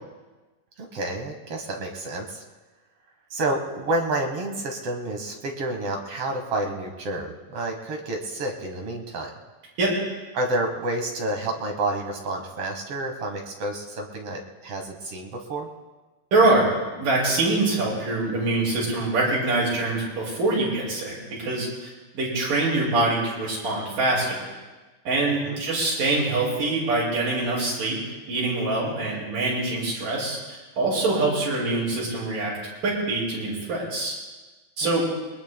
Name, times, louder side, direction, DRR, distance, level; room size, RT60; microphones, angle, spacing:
voice 1, 0.8-2.4 3.3-9.3 10.3-15.7 25.4-25.6 34.8-35.0, right 2 dB, 55° right, 2 dB, 1.9 m, -29 dB
voice 2, 16.3-16.7 16.9-24.5 25.1-28.0 28.3-32.6 32.8-34.1 34.8-35.0, right 2 dB, 80° right, -7 dB, 7.6 m, -24 dB
22.0 x 20.5 x 2.2 m, 1.2 s
omnidirectional pair, 3.8 m